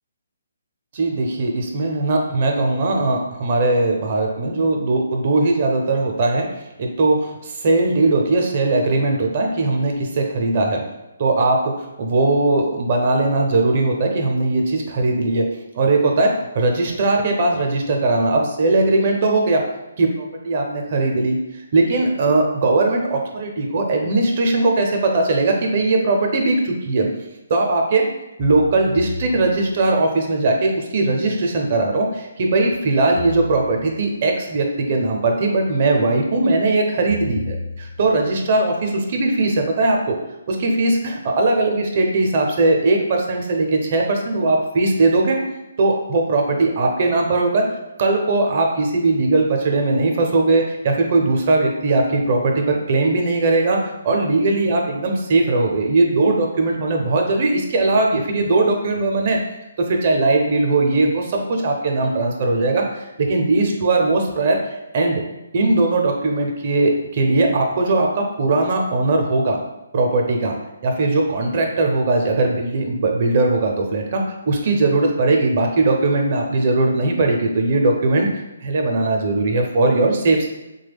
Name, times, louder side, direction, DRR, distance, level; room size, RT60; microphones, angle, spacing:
voice 1, 0.9-6.5 6.8-10.9 11.2-19.7 20.0-21.4 21.7-27.1 27.5-28.0 28.4-40.2 40.5-45.4 45.8-59.4 59.8-64.6 64.9-65.2 65.5-69.6 69.9-70.6 70.8-80.5, right 2 dB, 45° right, 2 dB, 0.6 m, -19 dB
sound 1, 25.7-25.8 28.4-30.0 33.2-34.2 37.1-38.4, left 3 dB, 50° left, 0.5 m, -33 dB
3.1 x 2.2 x 3.4 m, 1.0 s
hypercardioid pair, 160°, 0 cm